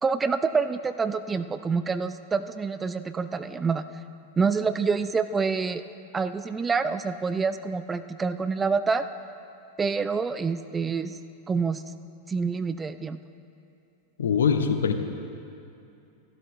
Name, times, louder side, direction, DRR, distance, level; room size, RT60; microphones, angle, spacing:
voice 1, 0.0-3.8 4.4-5.8 6.1-9.0 9.8-11.2 11.5-11.8 12.3-13.2, right 5 dB, 15° right, 11 dB, 0.3 m, -27 dB
voice 2, 14.2-14.9, left 6 dB, 65° left, 7 dB, 0.8 m, -22 dB
13.5 x 12.5 x 3.2 m, 2.6 s
figure-of-eight pair, 90°, 0 cm